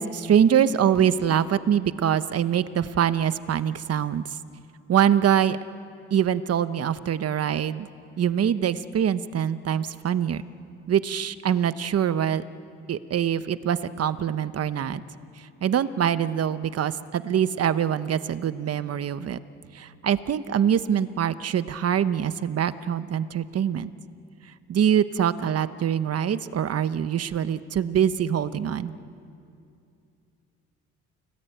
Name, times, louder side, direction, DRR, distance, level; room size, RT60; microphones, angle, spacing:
voice 1, 0.0-4.2 4.9-5.6 6.1-7.9 8.2-10.4 10.9-12.4 12.9-15.0 15.4-19.4 19.7-23.9 24.7-28.9, right 9 dB, 55° right, 13 dB, 1.1 m, -24 dB
29.5 x 19.5 x 9.2 m, 2.5 s
cardioid pair, 90°, 30 cm